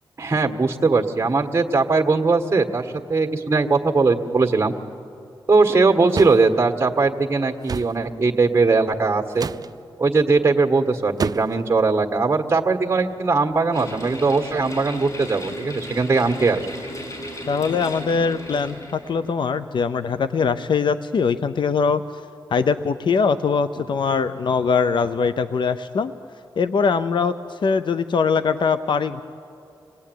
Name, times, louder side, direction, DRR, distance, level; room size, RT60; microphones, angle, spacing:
voice 1, 0.2-4.7 5.5-9.5 10.0-16.6, right 3 dB, 30° right, 4 dB, 1.7 m, -20 dB
sound 1, 6.1-6.4 7.7-8.0 9.3-9.7 11.2-11.6, right 5 dB, 50° right, 0.5 m, -27 dB
sound 2, 13.7-19.3, equal, 40° left, 6.8 m, -36 dB
voice 2, 17.5-22.0 22.5-26.1 26.6-29.2, left 5 dB, 70° left, 12 dB, 0.7 m, -22 dB
26.5 x 18.5 x 9.4 m, 2.6 s
cardioid pair, 70°, 9 cm